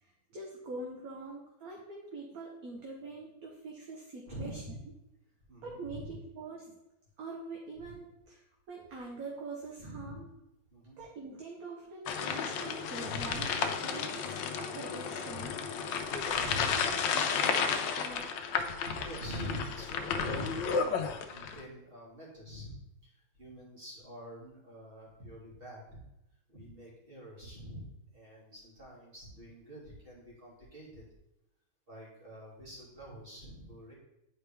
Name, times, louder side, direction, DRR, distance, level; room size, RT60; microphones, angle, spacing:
voice 1, 0.0-4.6 5.6-6.8 7.2-10.3 11.0-15.5 16.1-18.3, right 3 dB, 60° right, -1 dB, 1.3 m, -44 dB
voice 2, 4.3-4.8 5.5-6.1 7.8-7.9 9.8-10.2 10.7-11.0 13.0-13.5 15.3-15.5 16.0-16.9 18.8-22.8 23.0-26.0 26.5-27.9 28.1-31.0 31.9-33.9, equal, 30° right, -5 dB, 2.5 m, -45 dB
sound 1, 12.1-21.6, left 6 dB, 90° left, 1.3 m, -33 dB
9.7 x 4.3 x 3.4 m, 0.89 s
omnidirectional pair, 2.0 m